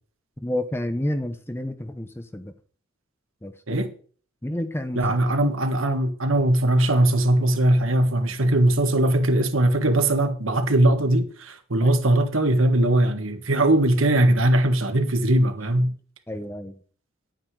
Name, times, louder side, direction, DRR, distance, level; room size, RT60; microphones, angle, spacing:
voice 1, 0.4-2.5 3.4-3.8 4.4-5.0 5.4-5.5 11.8-11.9 16.3-16.8, left 1 dB, 10° left, 0.9 m, -30 dB
voice 2, 4.9-15.9, right 1 dB, 75° right, 1.6 m, -20 dB
9.8 x 9.0 x 4.9 m
head